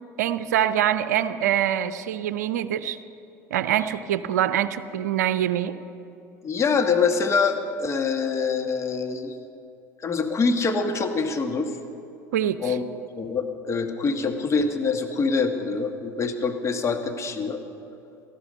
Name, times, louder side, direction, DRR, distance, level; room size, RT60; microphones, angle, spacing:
voice 1, 0.2-3.0 3.5-5.7 12.3-12.8, right 10 dB, 75° right, 14 dB, 0.5 m, -24 dB
voice 2, 6.4-9.4 10.0-11.7 12.6-12.8 13.2-17.6, left 4 dB, 30° left, 5 dB, 1.6 m, -25 dB
18.0 x 14.0 x 5.4 m, 2.8 s
figure-of-eight pair, 70°, 9 cm